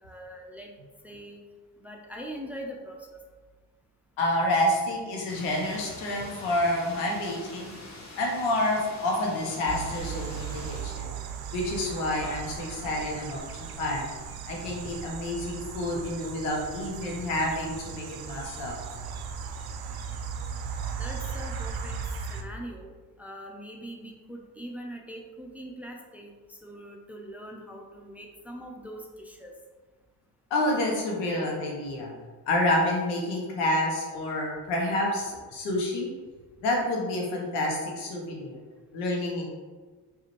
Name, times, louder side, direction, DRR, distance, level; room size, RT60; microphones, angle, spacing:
voice 1, 0.0-0.7 1.0-1.4 1.8-3.2 21.0-22.0 22.3-29.5, equal, 5° right, 0 dB, 0.6 m, -42 dB
voice 2, 4.2-7.7 8.2-11.1 11.5-14.1 14.5-18.8 30.5-32.1 32.5-36.1 36.6-38.6 38.9-39.5, left 1 dB, 75° left, -1 dB, 1.1 m, -28 dB
sound 1, 5.3-10.8, left 2 dB, 35° left, 1.2 m, -45 dB
sound 2, 9.7-22.4, right 6 dB, 50° right, 0.6 m, -37 dB
4.8 x 2.7 x 3.1 m, 1.4 s
hypercardioid pair, 50°, 50 cm